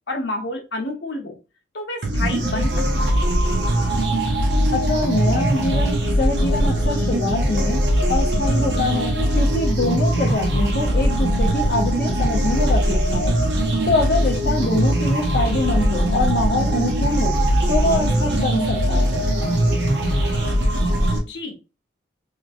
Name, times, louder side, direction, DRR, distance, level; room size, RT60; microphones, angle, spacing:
voice 1, 0.1-1.4 1.7-2.7 3.0-3.2 21.1-21.6, left 2 dB, 75° left, 3 dB, 0.9 m, -29 dB
sound 1, 2.0-21.2, right 1 dB, 70° right, 1.0 m, -20 dB
voice 2, 4.7-7.8 8.1-13.4 13.9-17.4 17.7-19.3, left 2 dB, 55° left, -1 dB, 0.6 m, -24 dB
3.2 x 2.9 x 2.5 m, 0.29 s
head